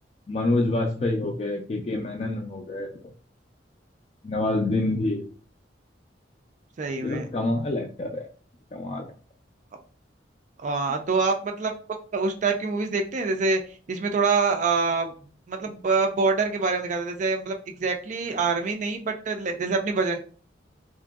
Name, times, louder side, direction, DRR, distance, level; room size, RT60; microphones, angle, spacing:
voice 1, 0.3-2.9 4.2-5.3 7.0-8.3 8.7-9.1, left 2 dB, 35° left, 1 dB, 0.3 m, -27 dB
voice 2, 6.8-7.3 10.6-11.7 12.1-13.6 13.9-15.1 15.5-20.2, right 4 dB, 40° right, 4 dB, 0.3 m, -25 dB
2.9 x 2.5 x 2.3 m, 0.40 s
head